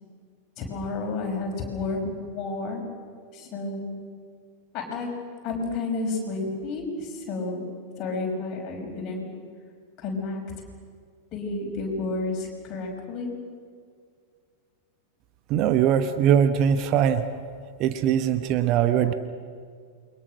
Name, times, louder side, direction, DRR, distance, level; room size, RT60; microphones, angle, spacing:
voice 1, 0.6-2.8 3.3-4.0 4.7-5.1 5.4-7.7 8.0-9.3 10.0-10.4 11.3-13.3, left 3 dB, 35° left, 1 dB, 5.7 m, -31 dB
voice 2, 15.5-17.2 17.8-19.1, right 9 dB, 40° right, 10 dB, 1.1 m, -21 dB
29.0 x 23.0 x 6.4 m, 2.1 s
figure-of-eight pair, 90°, 0 cm